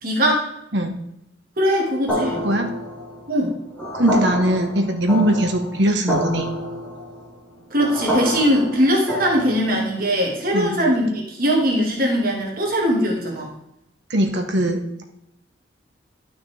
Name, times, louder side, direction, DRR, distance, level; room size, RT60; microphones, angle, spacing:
voice 1, 0.0-0.5 1.6-2.4 3.3-3.5 7.7-13.5, equal, 50° right, -1 dB, 2.2 m, -20 dB
sound 1, 2.1-9.9, equal, 10° left, 4.1 m, -28 dB
voice 2, 3.9-6.5 10.5-10.8 14.1-15.1, right 1 dB, 70° right, 4 dB, 1.6 m, -20 dB
12.5 x 6.0 x 3.6 m, 0.80 s
head